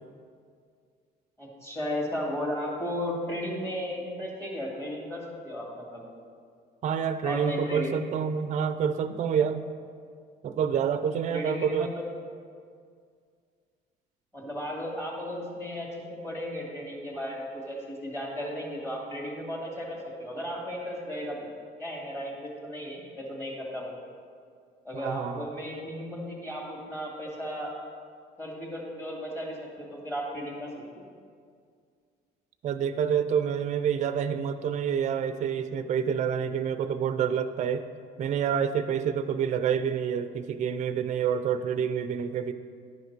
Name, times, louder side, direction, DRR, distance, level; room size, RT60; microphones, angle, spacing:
voice 1, 1.4-6.0 7.2-7.9 11.3-12.0 14.3-21.4 21.8-23.9 24.8-27.7 28.4-31.0, equal, 15° left, -2 dB, 2.0 m, -35 dB
voice 2, 6.8-9.7 10.4-11.9 24.9-25.5 32.6-37.8 38.2-42.5, right 7 dB, 45° right, 11 dB, 0.4 m, -28 dB
10.5 x 5.7 x 4.6 m, 2.1 s
cardioid pair, 110°, 17 cm